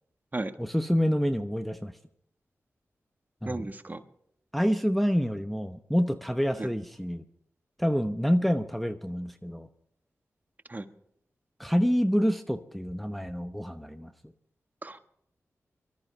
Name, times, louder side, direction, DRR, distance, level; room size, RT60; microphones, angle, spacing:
voice 1, 0.6-1.9 3.4-3.7 4.5-7.2 7.8-9.7 11.6-14.1, equal, ahead, 7 dB, 0.9 m, -27 dB
voice 2, 3.4-4.0 6.6-6.7 10.7-10.9 14.8-15.0, right 2 dB, 30° right, 8 dB, 1.4 m, -34 dB
23.5 x 14.0 x 3.3 m, 0.74 s
cardioid pair, 55°, 5 cm